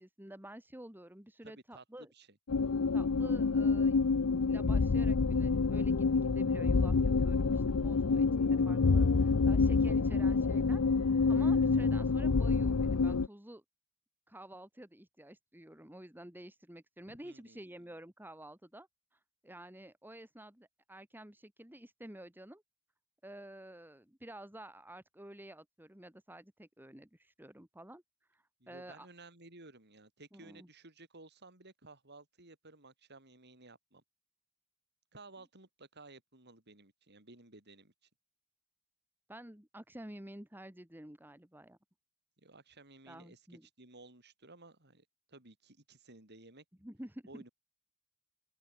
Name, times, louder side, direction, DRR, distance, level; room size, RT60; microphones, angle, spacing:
voice 1, 0.0-2.1 2.9-4.0 4.4-10.8 11.3-13.6 14.3-22.6 23.2-28.0 28.3-29.1 30.3-30.7 39.3-41.8 43.1-43.7 46.8-47.5, right 1 dB, 10° right, 2.1 m, -50 dB
voice 2, 1.4-2.4 17.0-17.7 28.6-34.0 35.1-37.9 42.4-46.6 47.3-47.5, right 2 dB, 50° right, 6.4 m, -56 dB
sound 1, 2.5-13.3, left 4 dB, 80° left, 0.7 m, -27 dB
open air
head